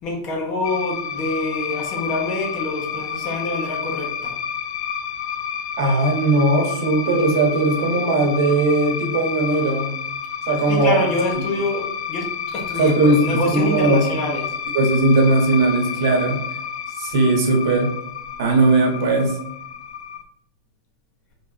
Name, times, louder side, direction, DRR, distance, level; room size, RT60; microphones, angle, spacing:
voice 1, 0.0-4.4 10.7-14.5, left 1 dB, 35° left, 0 dB, 1.3 m, -26 dB
sound 1, 0.6-20.2, left 8 dB, 80° left, 0.5 m, -30 dB
voice 2, 5.8-10.0 10.5-11.0 12.8-14.0 14.7-16.4 17.0-17.9 18.4-19.4, right 2 dB, 70° right, 1 dB, 1.5 m, -18 dB
4.8 x 3.8 x 2.9 m, 0.74 s
supercardioid pair, 150°, 2 cm